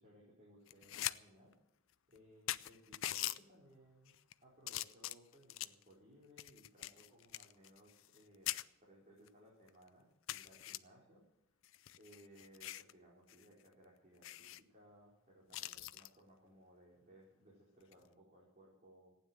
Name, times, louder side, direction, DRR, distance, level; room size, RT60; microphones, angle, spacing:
voice 1, 0.0-1.5 2.1-4.1 4.4-11.3 12.0-19.2, equal, 35° right, -5 dB, 4.3 m, -63 dB
sound 1, 0.7-1.2 1.5-1.6 2.2-2.3 2.5-3.4 4.1-4.3 4.7-5.8 6.4-8.2 8.5-8.6 9.3-9.4 9.7-9.8 10.3-10.8 11.6-12.9 13.3-13.4 13.7-13.8 14.2-14.6 15.5-16.1 17.8-18.1, left 14 dB, 60° left, 0.5 m, -42 dB
15.5 x 9.6 x 7.6 m, 0.82 s
head